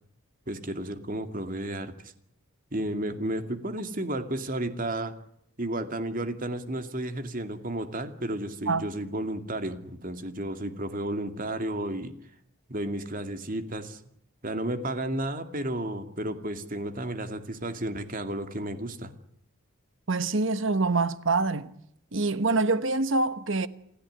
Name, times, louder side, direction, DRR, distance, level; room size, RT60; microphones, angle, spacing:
voice 1, 0.5-1.9 2.7-5.1 5.6-12.1 12.7-14.0 14.4-19.1, right 1 dB, 40° right, 2.4 m, -32 dB
voice 2, 20.1-21.7 22.1-23.7, right 3 dB, 60° right, 1.2 m, -25 dB
28.5 x 15.0 x 10.0 m
head